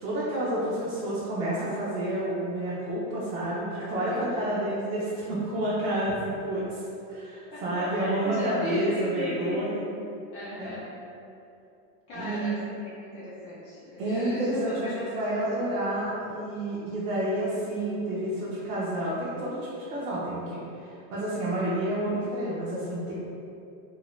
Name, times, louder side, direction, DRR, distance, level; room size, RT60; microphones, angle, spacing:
voice 1, 0.0-6.8 7.1-9.8 10.6-10.7 12.1-12.5 14.0-19.6 19.9-23.1, right 1 dB, 65° right, -9 dB, 0.9 m, -29 dB
voice 2, 3.7-4.6 7.5-9.6 10.3-10.9 12.1-15.7, left 1 dB, 30° left, -10 dB, 0.5 m, -38 dB
2.8 x 2.8 x 3.1 m, 2.7 s
supercardioid pair, 160°, 42 cm